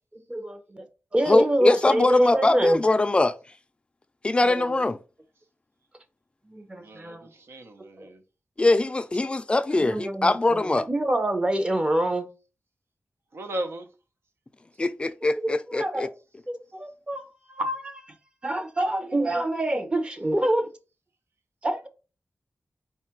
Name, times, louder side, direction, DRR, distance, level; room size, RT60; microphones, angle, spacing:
voice 1, 0.1-0.9 1.1-2.8 4.4-4.8 6.5-7.3 8.0-8.1 9.8-10.6 10.9-12.3 15.3-16.1 16.5-17.2 17.5-18.0 18.4-20.7 21.6-21.9, right 1 dB, 25° right, 0.7 m, -26 dB
voice 2, 1.3-3.3 4.2-5.0 8.6-10.9 14.8-16.1, left 2 dB, 25° left, 0.4 m, -22 dB
voice 3, 6.7-8.2 13.3-13.9, right 1 dB, 90° right, 0.8 m, -36 dB
4.4 x 2.4 x 4.4 m
wide cardioid pair, 130°, 4 cm